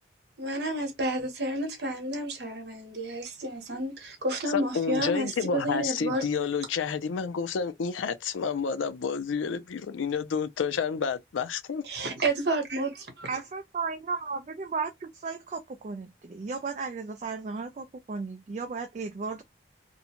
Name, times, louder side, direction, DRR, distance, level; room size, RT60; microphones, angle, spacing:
voice 1, 0.4-6.2 11.8-13.3, right 1 dB, 60° right, 1.0 m, -30 dB
voice 2, 4.5-11.8, left 6 dB, 90° left, 0.4 m, -30 dB
voice 3, 13.3-19.4, right 4 dB, 40° right, 0.3 m, -35 dB
2.6 x 2.2 x 2.8 m
head